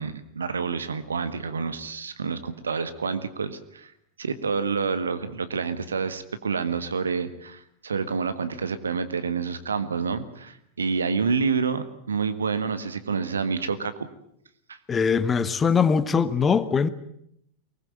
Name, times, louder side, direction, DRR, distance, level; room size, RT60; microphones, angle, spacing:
voice 1, 0.0-3.9 4.2-14.1 14.7-14.8, right 5 dB, 70° right, 1.6 m, -28 dB
voice 2, 14.9-16.9, left 6 dB, 20° left, 1.3 m, -21 dB
23.5 x 20.0 x 9.0 m
figure-of-eight pair, 90°, 0 cm